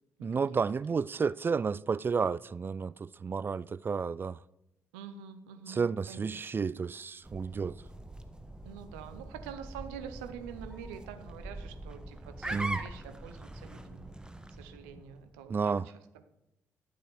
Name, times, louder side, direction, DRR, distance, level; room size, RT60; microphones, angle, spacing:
voice 1, 0.2-4.4 5.7-7.8 12.5-12.8 15.5-15.8, right 5 dB, 30° right, 0.3 m, -31 dB
voice 2, 4.9-5.8 6.1-6.6 8.6-14.2 14.6-15.8, right 8 dB, 75° right, 0.8 m, -46 dB
sound 1, 7.2-15.3, right 1 dB, 10° right, 1.1 m, -43 dB
11.5 x 7.6 x 5.2 m
figure-of-eight pair, 40°, 7 cm